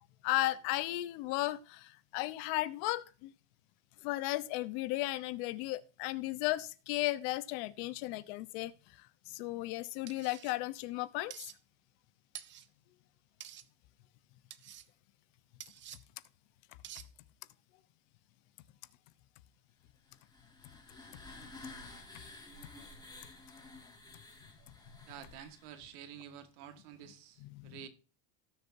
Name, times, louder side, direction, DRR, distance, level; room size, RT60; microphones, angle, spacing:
voice 1, 0.2-3.3 4.0-8.7 9.3-11.3 27.4-27.8, left 17 dB, 75° left, 1.0 m, -35 dB
sound 1, 10.1-10.5 11.3-11.6 12.3-12.7 13.4-13.7 14.5-14.9 15.6-16.0 16.8-17.1, right 11 dB, 25° right, 0.5 m, -48 dB
sound 2, 20.1-25.9, left 2 dB, 10° left, 2.0 m, -52 dB
voice 2, 25.1-27.9, right 9 dB, 85° right, 1.9 m, -50 dB
17.5 x 6.8 x 2.7 m
cardioid pair, 160°, 43 cm